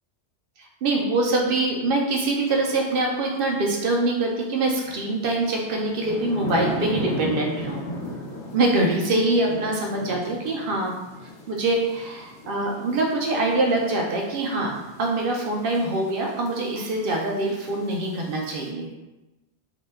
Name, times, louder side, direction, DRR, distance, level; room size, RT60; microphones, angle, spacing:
voice 1, 0.6-7.8 8.5-10.9 11.5-18.9, right 2 dB, 60° right, 0 dB, 0.7 m, -24 dB
sound 1, 2.4-2.6 4.8-18.7, left 1 dB, 70° left, 0.9 m, -37 dB
2.9 x 2.1 x 3.3 m, 1.0 s
omnidirectional pair, 1.2 m